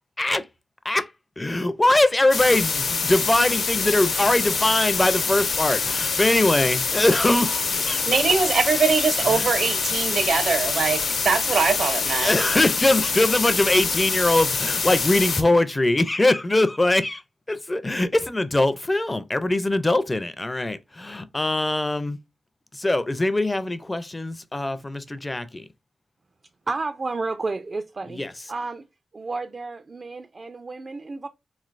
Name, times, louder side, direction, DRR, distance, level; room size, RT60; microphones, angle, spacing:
voice 1, 1.4-8.0 9.3-9.5 12.2-17.2 17.5-22.2 22.7-25.6 28.1-28.3, left 2 dB, 20° left, 0.4 m, -22 dB
sound 1, 2.3-15.4, left 4 dB, 80° left, 0.9 m, -25 dB
voice 2, 8.1-12.3, right 5 dB, 75° right, 0.8 m, -22 dB
voice 3, 26.7-28.2 28.5-28.9 29.1-31.3, right 3 dB, 45° right, 0.3 m, -31 dB
3.8 x 3.1 x 2.5 m
cardioid pair, 80°, 0 cm